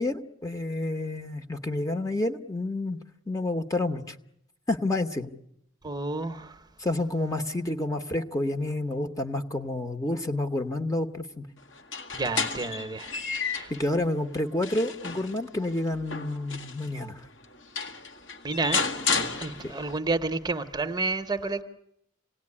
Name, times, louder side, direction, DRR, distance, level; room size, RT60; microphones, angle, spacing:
voice 1, 0.0-3.0 3.3-4.1 4.7-5.3 6.8-11.5 13.7-17.2 19.6-19.7, left 2 dB, 15° left, 6 dB, 1.0 m, -29 dB
voice 2, 5.8-6.6 12.1-13.1 13.4-13.7 18.4-18.8 19.4-21.6, right 3 dB, 20° right, 9 dB, 0.9 m, -30 dB
sound 1, 11.8-13.8 14.3-16.9 17.4-17.5 17.8-20.0, left 5 dB, 65° left, 2.0 m, -32 dB
26.5 x 18.0 x 9.8 m, 0.78 s
head